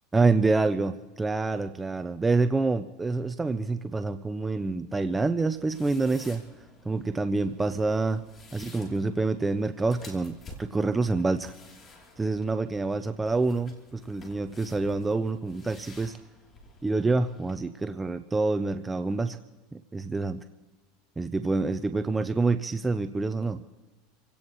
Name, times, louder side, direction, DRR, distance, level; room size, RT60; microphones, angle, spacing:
voice 1, 0.1-6.4 6.9-8.2 8.5-11.5 12.2-16.2 16.8-19.4 19.7-20.4 21.2-23.6, right 3 dB, 10° right, 9 dB, 0.5 m, -27 dB
sound 1, 5.4-17.6, left 2 dB, 30° left, 3.2 m, -51 dB
27.5 x 17.0 x 3.1 m, 1.2 s
supercardioid pair, 120°, 0 cm